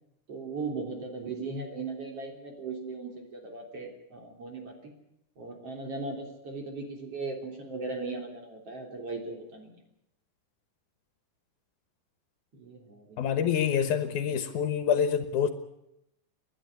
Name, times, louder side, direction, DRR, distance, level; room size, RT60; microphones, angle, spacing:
voice 1, 0.3-4.9 5.4-9.8 12.5-13.5, right 3 dB, 50° right, 2 dB, 4.3 m, -38 dB
voice 2, 13.2-15.5, left 8 dB, 75° left, 10 dB, 2.6 m, -26 dB
29.5 x 11.5 x 9.4 m, 0.83 s
omnidirectional pair, 3.5 m